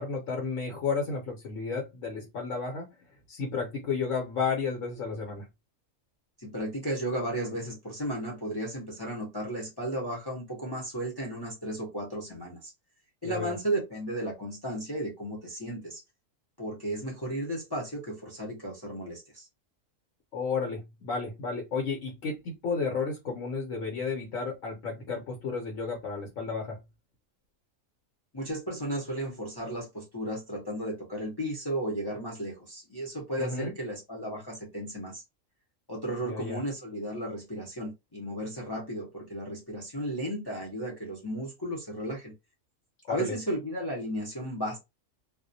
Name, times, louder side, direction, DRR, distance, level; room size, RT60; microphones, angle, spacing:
voice 1, 0.0-2.9 3.3-5.5 13.2-13.6 20.3-26.8 33.4-33.7 36.3-36.6 43.1-43.4, left 5 dB, 75° left, 1.1 m, -32 dB
voice 2, 6.4-12.7 13.2-16.0 16.6-19.5 28.3-35.2 35.9-42.3 43.1-44.8, right 1 dB, 25° left, 0.5 m, -34 dB
2.3 x 2.1 x 2.6 m
omnidirectional pair, 1.4 m